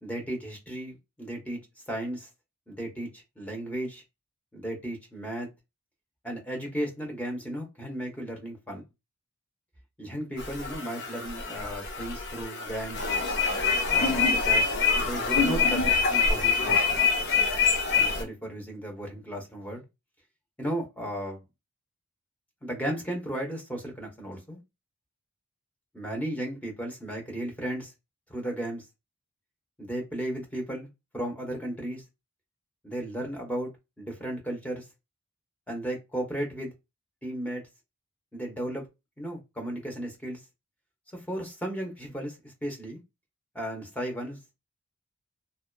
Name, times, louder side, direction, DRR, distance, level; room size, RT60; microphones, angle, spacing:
voice 1, 0.0-1.6 1.9-2.3 2.7-3.1 3.4-4.0 4.5-5.5 6.2-8.8 10.0-13.0 13.9-14.7 14.9-17.1 17.9-19.8 20.6-21.4 22.6-24.6 25.9-27.9 28.3-28.8 29.8-30.9 31.1-32.0 32.8-33.7 34.0-34.9 35.7-36.7 37.2-37.6 38.3-38.9 39.2-40.4 41.1-43.0 43.5-44.4, right 1 dB, 5° left, 0.7 m, -35 dB
sound 1, 10.4-18.2, left 5 dB, 55° left, 0.6 m, -25 dB
2.7 x 2.2 x 2.2 m
head